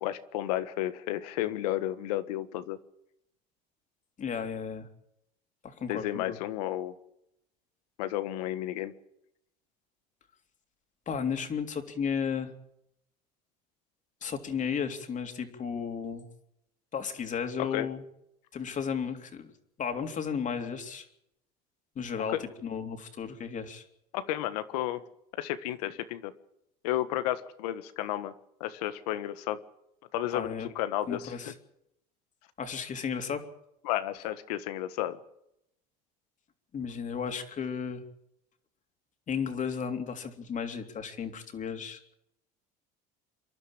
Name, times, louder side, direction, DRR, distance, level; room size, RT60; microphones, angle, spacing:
voice 1, 0.0-2.8 5.9-6.9 8.0-8.9 17.7-17.9 22.3-22.4 24.1-25.0 25.4-26.3 26.8-28.3 28.6-29.6 30.1-31.5 33.8-35.2, left 13 dB, 85° left, 12 dB, 1.5 m, -32 dB
voice 2, 4.2-4.9 5.6-6.4 11.1-12.5 14.2-16.3 16.9-18.0 18.5-19.5 19.8-21.1 21.9-23.8 30.3-30.7 31.1-31.5 32.6-33.4 36.7-38.0 39.3-42.1, left 6 dB, 40° left, 6 dB, 3.3 m, -34 dB
27.5 x 11.5 x 8.8 m, 0.79 s
supercardioid pair, 90°, 20 cm